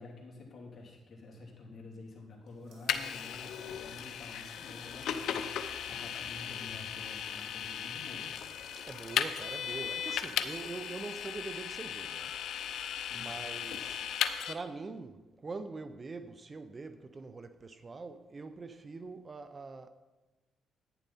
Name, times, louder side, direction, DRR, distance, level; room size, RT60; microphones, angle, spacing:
voice 1, 0.0-8.3 12.9-13.3, left 2 dB, 45° left, 3.0 m, -49 dB
sound 1, 2.3-12.5, right 3 dB, 60° right, 2.8 m, -60 dB
Vehicle, 2.9-14.5, left 9 dB, 75° left, 0.6 m, -36 dB
voice 2, 8.8-12.3 13.1-14.1 14.5-19.9, right 3 dB, 30° right, 0.6 m, -43 dB
11.0 x 9.5 x 4.2 m
cardioid pair, 90°, 0 cm